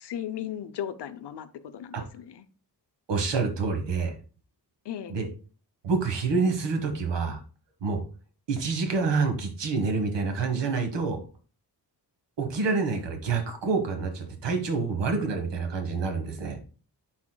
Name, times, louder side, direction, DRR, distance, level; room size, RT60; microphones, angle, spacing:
voice 1, 0.0-1.5 1.7-2.4 4.8-5.1, left 10 dB, 75° left, 0.7 m, -36 dB
voice 2, 3.1-4.1 5.1-5.3 5.8-7.4 7.8-8.0 8.5-11.2 12.4-16.6, right 4 dB, 85° right, 1.4 m, -27 dB
9.9 x 4.3 x 2.2 m
wide cardioid pair, 150°, 42 cm